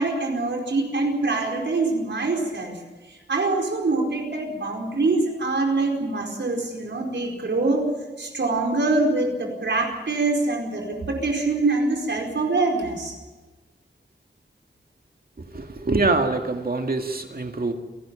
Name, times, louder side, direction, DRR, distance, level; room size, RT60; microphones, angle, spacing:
voice 1, 0.0-2.7 3.1-7.9 8.2-13.1, right 3 dB, 80° right, 1 dB, 4.8 m, -24 dB
voice 2, 15.4-17.7, right 3 dB, 55° right, 5 dB, 2.2 m, -24 dB
29.0 x 12.5 x 8.9 m, 1.2 s
wide cardioid pair, 95°, 18 cm